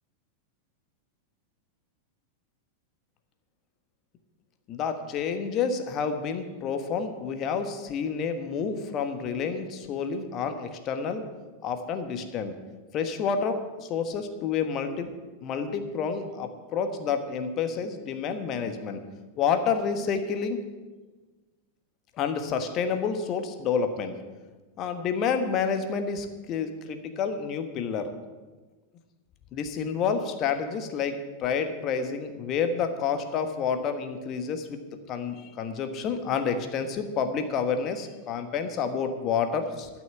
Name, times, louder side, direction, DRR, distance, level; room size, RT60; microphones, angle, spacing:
voice 1, 4.7-11.2 11.6-12.5 12.9-15.1 15.4-19.0 19.4-20.6 22.2-24.2 24.8-28.1 29.5-34.8 35.1-39.9, left 6 dB, 35° left, 7 dB, 1.3 m, -29 dB
12.5 x 6.3 x 8.7 m, 1.3 s
figure-of-eight pair, 90°, 0 cm